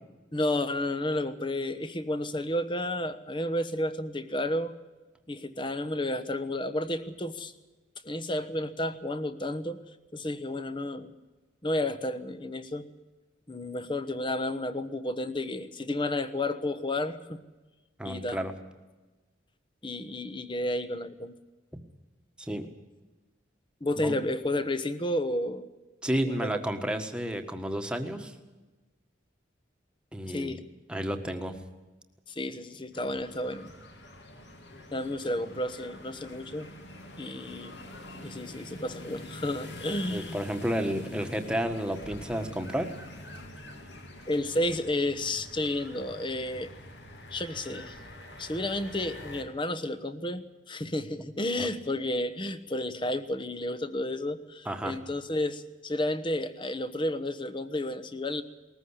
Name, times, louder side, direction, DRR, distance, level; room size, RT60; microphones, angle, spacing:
voice 1, 0.3-4.7 5.3-7.5 8.0-9.8 10.1-11.1 11.6-12.9 13.5-17.4 18.0-18.4 19.8-21.3 23.8-25.7 26.2-26.6 30.3-30.6 32.3-33.7 34.9-36.7 37.2-37.7 38.2-40.4 44.3-46.7 47.3-48.0 48.4-58.4, left 1 dB, 25° left, 11 dB, 1.1 m, -31 dB
voice 2, 18.0-18.5 22.4-22.7 24.0-24.1 26.0-28.3 30.1-30.6 30.9-31.6 40.1-42.9 51.6-51.7 54.6-55.0, equal, 5° right, 5 dB, 1.6 m, -31 dB
sound 1, 32.9-49.4, left 1 dB, 60° left, 2.8 m, -46 dB
20.0 x 14.5 x 9.9 m, 1.2 s
head